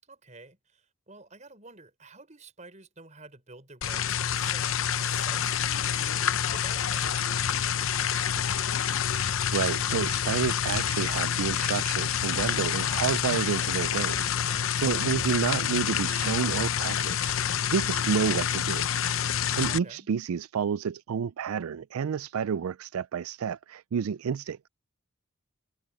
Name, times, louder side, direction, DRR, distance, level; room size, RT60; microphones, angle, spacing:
voice 1, 0.0-7.7 19.6-20.1, right 3 dB, 35° right, 5.6 m, -50 dB
sound 1, 3.8-19.8, left 8 dB, 70° left, 0.7 m, -28 dB
voice 2, 9.1-18.9 19.6-24.7, right 7 dB, 85° right, 0.4 m, -30 dB
head